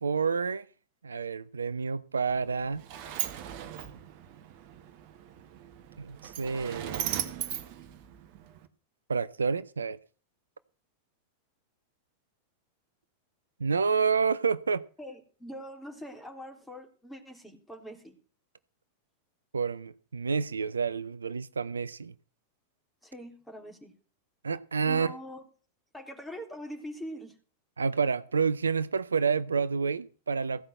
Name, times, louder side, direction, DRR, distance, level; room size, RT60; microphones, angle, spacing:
voice 1, 0.0-0.6 1.0-2.8 6.0-7.2 9.1-10.0 13.6-14.8 19.5-22.1 24.4-25.1 27.8-30.6, right 5 dB, 75° right, 0.5 m, -29 dB
Sliding door, 2.3-8.7, right 11 dB, 45° right, 1.4 m, -38 dB
voice 2, 15.0-18.2 23.0-23.9 24.8-25.4 25.9-27.3, equal, 5° left, 3.1 m, -43 dB
15.5 x 5.7 x 7.8 m
figure-of-eight pair, 90°, 0 cm